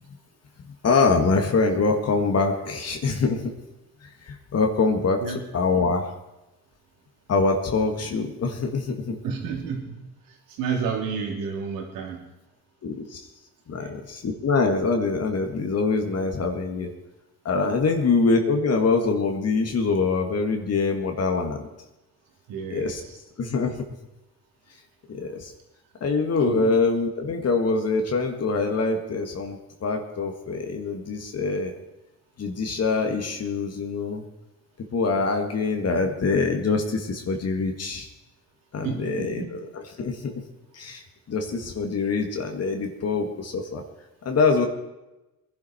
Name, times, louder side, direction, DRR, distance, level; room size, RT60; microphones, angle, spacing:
voice 1, 0.8-3.5 4.0-5.2 5.5-6.1 7.3-9.2 12.8-13.2 13.7-16.9 17.5-21.7 22.7-23.0 23.4-23.7 25.1-25.5 26.0-31.7 32.4-34.2 34.9-38.1 38.7-40.3 40.7-43.8 44.2-44.6, left 4 dB, 50° left, 3 dB, 2.0 m, -24 dB
voice 2, 9.2-10.0 10.6-12.2 13.8-13.9 22.5-23.2 26.5-26.7 38.8-39.5, right 6 dB, 85° right, 0 dB, 3.4 m, -30 dB
21.5 x 11.0 x 4.5 m, 0.99 s
cardioid pair, 95°, 33 cm